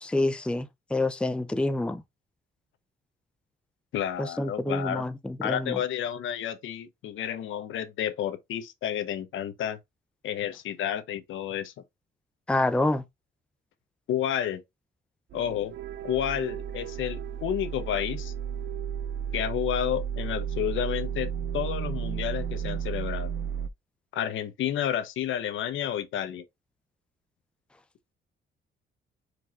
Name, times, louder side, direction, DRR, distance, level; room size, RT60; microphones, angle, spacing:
voice 1, 0.0-2.0 4.2-5.8 12.5-13.0, left 2 dB, 5° left, 0.5 m, -27 dB
voice 2, 3.9-5.1 5.4-9.8 10.2-11.7 14.1-14.6 15.3-15.7 16.0-18.3 19.3-23.3 24.1-26.4, left 10 dB, 80° left, 1.0 m, -30 dB
sound 1, 15.3-23.7, right 8 dB, 65° right, 0.6 m, -33 dB
4.6 x 4.6 x 2.4 m
cardioid pair, 90°, 20 cm